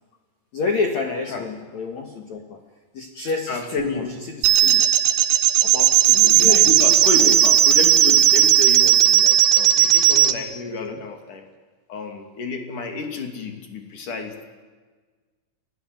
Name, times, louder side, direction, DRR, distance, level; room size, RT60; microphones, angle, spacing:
voice 1, 0.5-2.6 2.9-4.8 5.6-6.7 7.0-7.3 10.8-11.0, left 4 dB, 65° left, 4 dB, 1.7 m, -29 dB
voice 2, 3.5-4.1 6.1-11.4 11.9-14.4, left 3 dB, 45° left, 5 dB, 3.6 m, -30 dB
sound 1, 4.4-10.4, right 11 dB, 70° right, 3.0 m, -16 dB
30.0 x 17.0 x 9.3 m, 1.4 s
omnidirectional pair, 5.8 m